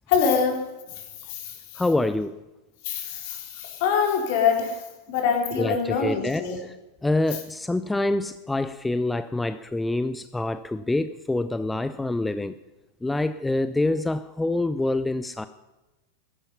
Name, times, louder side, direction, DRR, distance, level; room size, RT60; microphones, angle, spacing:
voice 1, 0.1-0.6 1.3-1.5 2.8-4.8 5.1-6.6, left 6 dB, 55° left, 2 dB, 3.8 m, -24 dB
voice 2, 1.8-2.4 5.6-6.8 7.0-12.6 13.0-15.5, left 2 dB, 10° left, 12 dB, 0.5 m, -26 dB
16.0 x 13.0 x 5.6 m, 1.1 s
figure-of-eight pair, 90°, 0 cm